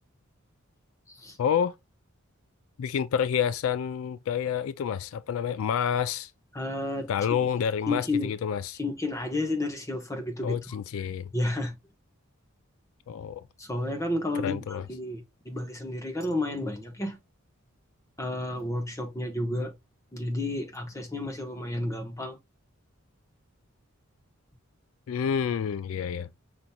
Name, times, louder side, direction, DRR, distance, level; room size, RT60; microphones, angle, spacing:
voice 1, 1.4-1.7 2.8-6.3 7.1-8.8 10.4-11.3 13.1-13.4 14.4-14.8 25.1-26.3, left 8 dB, 75° left, 0.3 m, -28 dB
voice 2, 6.5-7.1 7.9-8.3 8.8-10.7 11.3-11.7 13.6-17.2 18.2-19.7 20.1-22.4, left 1 dB, 15° left, 1.0 m, -31 dB
5.0 x 4.3 x 2.2 m
head